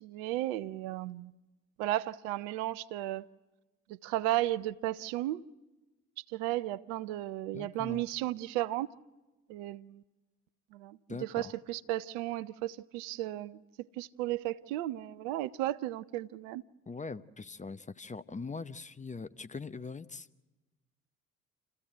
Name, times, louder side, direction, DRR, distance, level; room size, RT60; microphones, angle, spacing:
voice 1, 0.0-1.3 1.8-3.3 4.0-5.4 6.3-8.9 9.5-10.0 10.7-13.6 14.0-16.6, right 15 dB, 75° right, 0.6 m, -34 dB
voice 2, 7.5-8.0 11.1-11.5 16.9-20.3, left 4 dB, 20° left, 0.8 m, -42 dB
28.0 x 15.5 x 7.8 m
hypercardioid pair, 45°, 38 cm